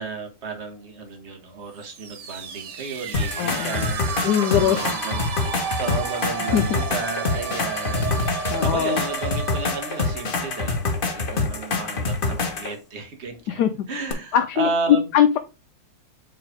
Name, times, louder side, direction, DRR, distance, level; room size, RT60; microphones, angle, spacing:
voice 1, 0.0-4.0 4.5-13.6 13.9-15.1, right 4 dB, 40° right, 5 dB, 1.4 m, -33 dB
sound 1, 1.8-11.5, right 6 dB, 70° right, 1.4 m, -32 dB
sound 2, 3.1-12.7 14.1-14.2, left 3 dB, 40° left, 0.9 m, -26 dB
voice 2, 3.4-3.9 4.2-4.8 6.5-6.6 8.5-9.1 13.5-13.7 14.3-14.7 15.1-15.4, left 10 dB, 75° left, 8 dB, 1.1 m, -21 dB
4.9 x 4.0 x 5.0 m, 0.29 s
omnidirectional pair, 1.9 m